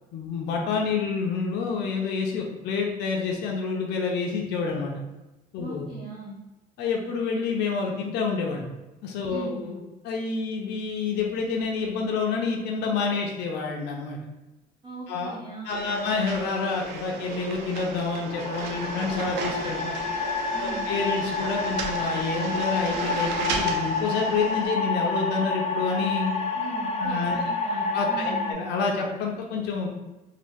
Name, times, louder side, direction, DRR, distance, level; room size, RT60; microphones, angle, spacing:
voice 1, 0.1-4.9 5.5-5.9 6.8-8.6 9.0-14.2 15.1-15.4 15.6-19.9 20.6-26.4 27.0-27.4 27.9-29.9, left 4 dB, 80° left, 0 dB, 0.7 m, -28 dB
voice 2, 5.6-6.3 9.3-9.6 14.8-16.0 20.5-20.8 26.5-28.6, right 1 dB, 25° right, -9 dB, 1.2 m, -38 dB
sound 1, 15.7-24.6, right 4 dB, 90° right, 0.5 m, -34 dB
sound 2, 18.3-28.5, left 3 dB, 40° left, 0.6 m, -29 dB
2.9 x 2.6 x 3.5 m, 1.0 s
cardioid pair, 110°, 17 cm